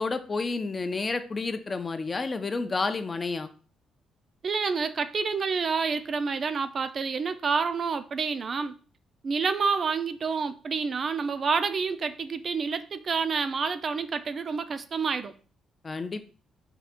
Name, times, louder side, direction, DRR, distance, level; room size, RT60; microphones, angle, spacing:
voice 1, 0.0-3.5 15.8-16.3, left 3 dB, 30° left, 0.4 m, -30 dB
voice 2, 4.4-8.7 9.2-15.3, right 5 dB, 45° right, 0.3 m, -28 dB
3.7 x 2.3 x 3.5 m
cardioid pair, 90°, 0 cm